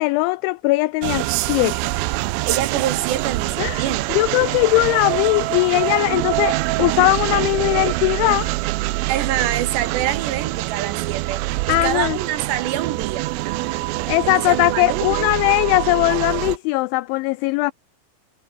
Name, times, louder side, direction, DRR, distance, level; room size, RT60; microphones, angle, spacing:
voice 1, 0.0-1.8 3.6-8.5 11.7-12.2 14.1-17.7, left 21 dB, 85° left, 2.6 m, -19 dB
sound 1, 1.0-16.6, right 19 dB, 80° right, 3.4 m, -25 dB
voice 2, 2.4-4.2 9.1-13.6 14.2-15.3, right 11 dB, 65° right, 3.6 m, -26 dB
omnidirectional pair, 5.9 m